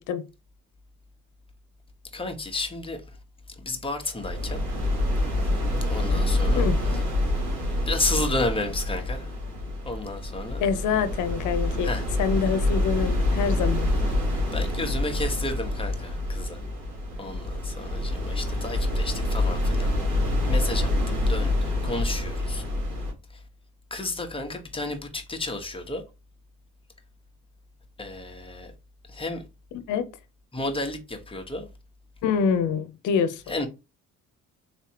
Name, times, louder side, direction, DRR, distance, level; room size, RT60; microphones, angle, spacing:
voice 1, 2.1-3.2 3.6-4.6 5.8-7.0 7.9-9.3 9.8-10.6 11.8-12.0 14.5-16.6 17.2-19.9 20.5-22.6 23.3-23.4 23.9-26.0 28.0-28.7 29.1-29.4 30.5-31.7 33.5-33.7, left 2 dB, 15° left, 1.2 m, -32 dB
sound 1, 4.2-23.1, left 1 dB, 90° right, 2.1 m, -26 dB
voice 2, 10.6-11.9 12.2-13.9 29.9-30.1 32.2-33.4, left 6 dB, 85° left, 0.7 m, -25 dB
4.2 x 3.3 x 2.8 m
cardioid pair, 90°, 30 cm